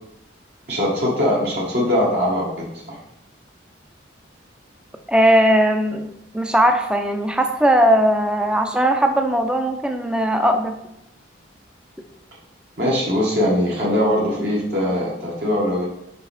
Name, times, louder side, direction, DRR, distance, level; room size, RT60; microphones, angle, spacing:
voice 1, 0.7-3.0 12.8-15.8, left 1 dB, 55° right, -5 dB, 1.4 m, -21 dB
voice 2, 5.1-6.1 6.3-10.7, equal, 5° right, 5 dB, 0.5 m, -18 dB
5.4 x 5.1 x 4.1 m, 0.82 s
head